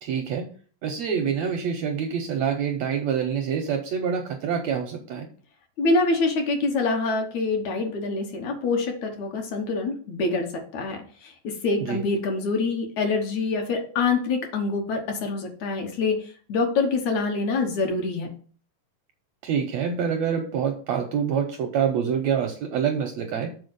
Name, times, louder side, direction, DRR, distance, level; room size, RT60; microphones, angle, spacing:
voice 1, 0.0-0.5 0.8-5.3 11.8-12.0 19.4-23.5, right 7 dB, 75° right, 4 dB, 1.6 m, -26 dB
voice 2, 5.8-16.2 16.5-18.3, left 3 dB, 65° left, 3 dB, 2.3 m, -25 dB
7.1 x 4.2 x 6.7 m, 0.43 s
omnidirectional pair, 3.8 m